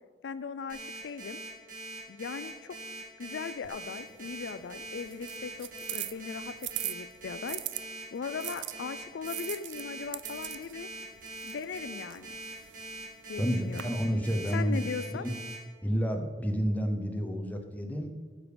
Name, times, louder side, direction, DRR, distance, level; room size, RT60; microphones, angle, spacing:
voice 1, 0.2-1.4 2.1-2.8 3.2-7.6 8.1-10.9 11.4-12.4 13.3-13.9 14.5-15.3, left 5 dB, 75° left, 14 dB, 0.4 m, -38 dB
Alarm, 0.7-15.5, right 2 dB, 50° right, 3.3 m, -42 dB
sound 1, 3.6-7.8 8.4-13.8, right 15 dB, 80° right, 0.4 m, -42 dB
voice 2, 13.4-15.3 15.8-18.1, equal, 10° left, 5 dB, 0.8 m, -30 dB
9.7 x 6.7 x 5.1 m, 1.5 s
head